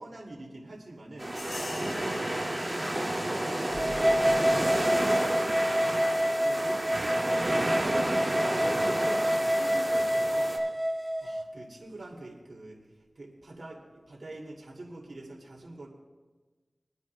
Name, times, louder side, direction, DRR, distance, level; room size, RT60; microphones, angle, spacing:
voice 1, 0.0-1.3 1.8-6.7 7.0-10.6 11.2-15.9, right 2 dB, 65° right, -2 dB, 2.4 m, -45 dB
sound 1, 1.2-10.6, right 1 dB, 25° right, 2.1 m, -31 dB
sound 2, 1.4-9.6, left 2 dB, 65° left, 1.0 m, -48 dB
sound 3, 3.7-11.4, equal, ahead, 1.2 m, -27 dB
27.5 x 9.5 x 2.2 m, 1.3 s
cardioid pair, 45°, 0 cm